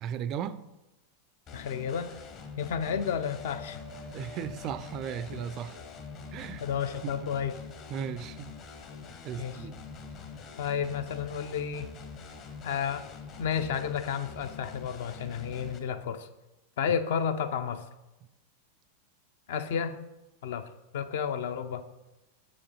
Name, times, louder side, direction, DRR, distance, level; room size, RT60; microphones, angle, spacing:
voice 1, 0.0-0.6 4.1-5.8 6.3-6.6 7.0-7.1 7.9-8.6 9.2-9.8, right 8 dB, 35° right, 0.3 m, -36 dB
voice 2, 1.5-2.1 2.6-3.8 5.3-5.4 6.6-7.5 9.4-9.6 10.6-11.9 12.6-13.1 13.4-16.3 16.8-17.8 19.5-20.0 20.4-20.7 20.9-21.8, left 7 dB, 55° left, 0.5 m, -31 dB
sound 1, 1.5-15.8, left 5 dB, 35° left, 0.8 m, -45 dB
sound 2, 2.7-7.1, left 3 dB, 80° left, 2.4 m, -51 dB
6.7 x 5.0 x 4.1 m
figure-of-eight pair, 90°, 0 cm